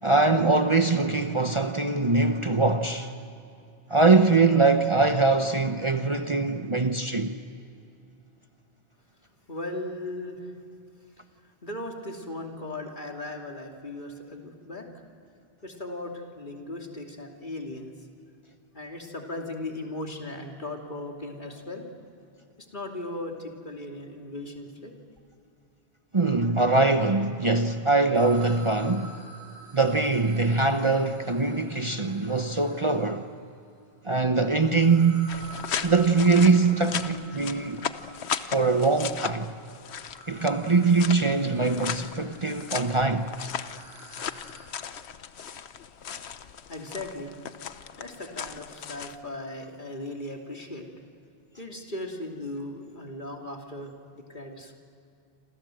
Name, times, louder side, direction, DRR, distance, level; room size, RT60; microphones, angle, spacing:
voice 1, 0.0-3.1 3.9-7.4 26.1-29.2 29.7-33.2 34.0-35.4 35.8-37.8 38.5-39.5 40.3-43.3, right 3 dB, 30° right, 1.0 m, -22 dB
voice 2, 9.5-10.5 11.6-14.9 15.6-17.9 18.7-21.8 22.6-24.9 46.7-47.3 48.0-50.9 51.6-54.7, left 2 dB, 50° left, 3.1 m, -37 dB
sound 1, 28.1-33.4 34.2-44.7, right 2 dB, 60° right, 6.3 m, -49 dB
sound 2, 35.3-49.2, left 8 dB, 80° left, 1.1 m, -37 dB
27.5 x 27.5 x 7.8 m
omnidirectional pair, 1.1 m